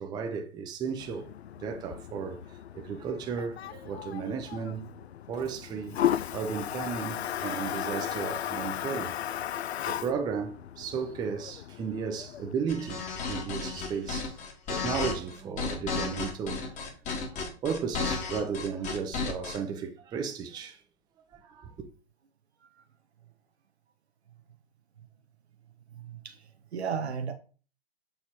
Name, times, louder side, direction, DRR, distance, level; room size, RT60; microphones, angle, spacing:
voice 1, 0.0-1.3 1.6-5.0 5.3-6.0 6.3-9.1 9.8-14.3 14.7-20.8 21.3-21.9, right 6 dB, 15° right, 0.6 m, -35 dB
Toilet flush, 1.0-12.5, left 11 dB, 75° left, 0.5 m, -35 dB
sound 1, 12.7-19.6, left 4 dB, 20° left, 1.3 m, -33 dB
voice 2, 25.9-27.3, right 6 dB, 75° right, 1.0 m, -36 dB
6.8 x 4.1 x 4.3 m
figure-of-eight pair, 120°, 33 cm